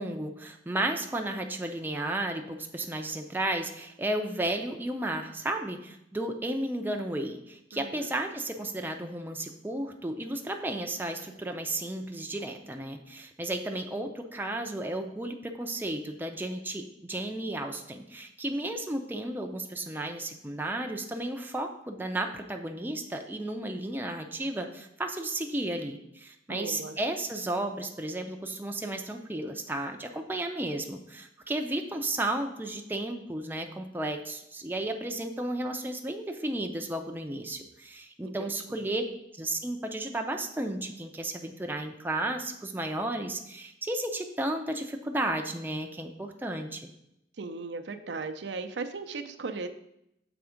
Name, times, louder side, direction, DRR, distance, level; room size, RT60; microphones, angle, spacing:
voice 1, 0.0-39.0 39.3-46.9, right 1 dB, 10° right, 4 dB, 0.5 m, -33 dB
voice 2, 7.7-8.1 26.5-27.0 38.2-38.9 47.4-49.7, right 4 dB, 85° right, 7 dB, 0.5 m, -37 dB
7.0 x 3.5 x 5.0 m, 0.80 s
head